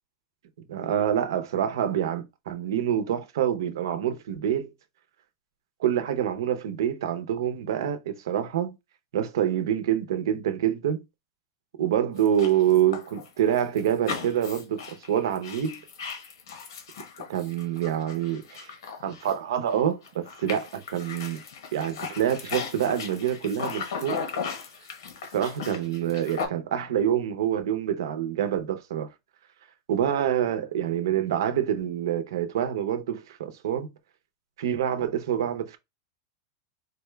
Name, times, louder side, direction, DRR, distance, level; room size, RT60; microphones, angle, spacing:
voice 1, 0.7-4.7 5.8-8.8 9.1-11.0 11.8-15.8 17.3-18.7 19.0-21.4 21.7-24.2 25.3-29.1 29.9-33.9 34.6-35.8, right 10 dB, 70° right, 0.7 m, -26 dB
sound 1, 12.2-19.7 20.0-26.5, left 6 dB, 80° left, 1.1 m, -37 dB
4.1 x 2.2 x 3.1 m
supercardioid pair, 175°, 2 cm